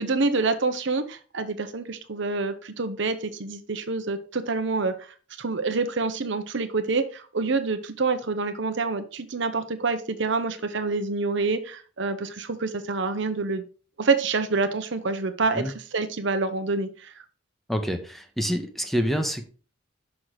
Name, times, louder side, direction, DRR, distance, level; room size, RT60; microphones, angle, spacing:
voice 1, 0.0-5.0 5.4-13.6 14.0-17.1, right 3 dB, 65° right, 9 dB, 0.9 m, -27 dB
voice 2, 17.7-19.4, equal, ahead, 6 dB, 0.9 m, -27 dB
6.2 x 5.7 x 4.8 m, 0.37 s
head